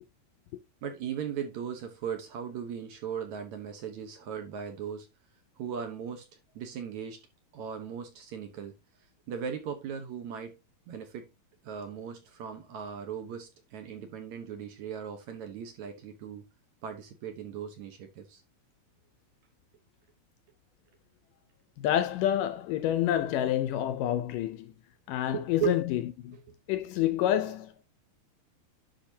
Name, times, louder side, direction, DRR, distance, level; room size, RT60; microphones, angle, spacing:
voice 1, 0.8-5.1 5.6-6.3 6.6-7.2 7.5-8.7 9.3-10.6 10.9-11.3 11.6-16.5 16.8-18.4 25.3-25.8 26.3-26.4, right 7 dB, 65° right, 2.1 m, -37 dB
voice 2, 21.8-24.7 25.1-26.4 26.7-27.7, left 12 dB, 80° left, 2.0 m, -28 dB
10.0 x 5.8 x 2.8 m
omnidirectional pair, 4.2 m